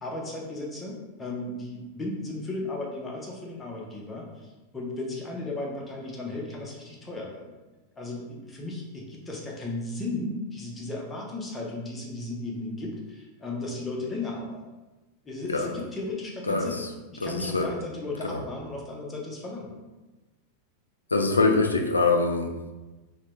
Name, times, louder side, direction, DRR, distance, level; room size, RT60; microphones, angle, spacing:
voice 1, 0.0-4.3 4.7-7.5 8.0-14.6 15.2-16.8 17.1-19.7, left 2 dB, 15° left, -2 dB, 0.7 m, -35 dB
voice 2, 16.5-16.9 17.2-17.7 18.3-18.4 21.1-22.5, left 3 dB, 80° left, 3 dB, 0.3 m, -24 dB
2.8 x 2.2 x 3.1 m, 1.1 s
figure-of-eight pair, 90°, 0 cm